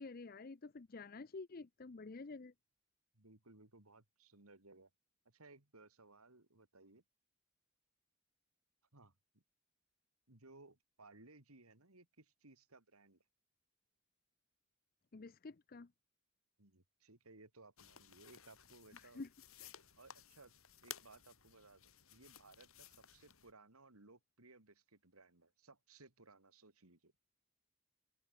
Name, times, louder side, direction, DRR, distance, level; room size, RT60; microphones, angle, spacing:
voice 1, 0.0-2.5 15.1-15.9 19.0-19.3, left 3 dB, 40° left, 0.6 m, -49 dB
voice 2, 3.2-4.9 5.3-7.0 8.9-9.4 10.3-13.2 16.6-19.2 20.0-20.5 20.8-27.1, right 3 dB, 90° right, 3.4 m, -62 dB
sound 1, 17.8-23.5, left 9 dB, 75° left, 4.2 m, -57 dB
head